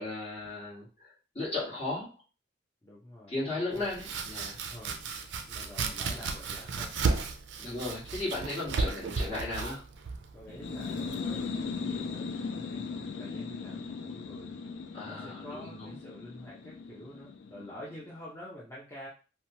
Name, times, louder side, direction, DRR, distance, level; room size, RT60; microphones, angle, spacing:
voice 1, 0.0-2.1 3.3-4.6 7.6-9.8 14.9-16.0, left 2 dB, 35° left, -7 dB, 1.3 m, -36 dB
voice 2, 2.8-3.8 4.7-5.1 5.5-7.0 10.3-14.6 15.0-19.1, left 1 dB, 15° left, -7 dB, 0.6 m, -48 dB
Domestic sounds home sounds, 3.7-11.5, right 4 dB, 65° right, 0.4 m, -34 dB
sound 1, 10.5-18.0, left 4 dB, 70° left, 0.4 m, -38 dB
2.9 x 2.2 x 2.7 m, 0.34 s
head